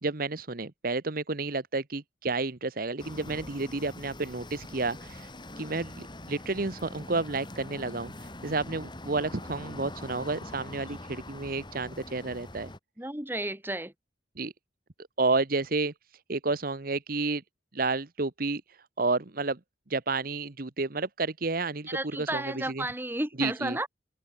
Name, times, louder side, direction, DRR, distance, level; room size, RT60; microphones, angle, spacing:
voice 1, 0.0-5.3 5.6-12.7 14.4-14.5 15.2-15.9 16.3-17.4 17.7-19.6 19.9-22.9 23.4-23.8, right 3 dB, 55° right, 1.2 m, -31 dB
sound 1, 3.0-12.8, left 1 dB, 25° left, 5.6 m, -43 dB
voice 2, 13.0-13.9 21.9-23.9, right 1 dB, 10° right, 6.5 m, -32 dB
head